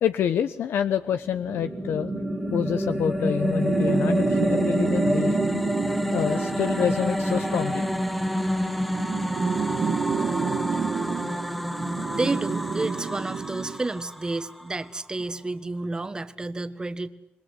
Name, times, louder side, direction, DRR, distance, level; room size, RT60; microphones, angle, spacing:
voice 1, 0.0-2.1 2.5-5.4 6.1-7.9 9.6-9.8, left 9 dB, 75° left, 10 dB, 1.0 m, -27 dB
sound 1, 1.2-14.6, equal, ahead, 1.6 m, -28 dB
sound 2, 1.4-13.8, right 6 dB, 50° right, 1.3 m, -30 dB
voice 2, 12.1-17.1, right 2 dB, 20° right, 11 dB, 1.5 m, -30 dB
27.5 x 21.5 x 9.4 m, 0.86 s
cardioid pair, 105°, 4 cm